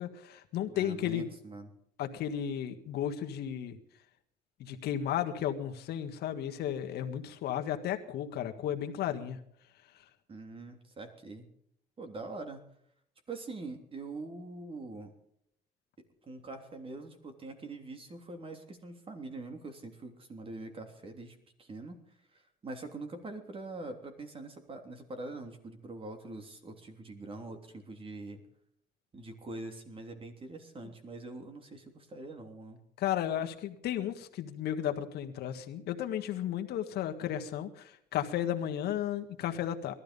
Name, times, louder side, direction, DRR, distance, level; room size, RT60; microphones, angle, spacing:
voice 1, 0.0-1.3 2.0-3.8 4.6-9.4 33.0-39.9, left 10 dB, 75° left, 5 dB, 1.7 m, -34 dB
voice 2, 0.7-1.7 10.3-11.5 12.0-12.7 13.3-15.1 16.3-22.0 22.3-28.4 29.1-32.8, right 2 dB, 30° right, 5 dB, 3.3 m, -44 dB
20.0 x 13.0 x 5.4 m, 0.70 s
cardioid pair, 110°, 17 cm